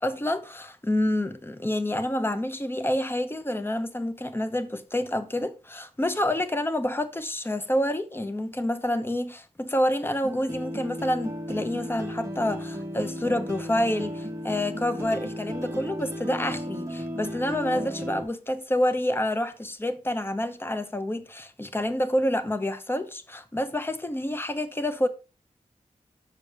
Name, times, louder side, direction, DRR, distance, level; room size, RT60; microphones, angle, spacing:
voice 1, 0.0-25.1, left 1 dB, 15° left, 0.8 m, -28 dB
sound 1, 10.2-18.2, equal, 20° right, 1.5 m, -35 dB
7.2 x 6.0 x 4.9 m
wide cardioid pair, 90°, 14 cm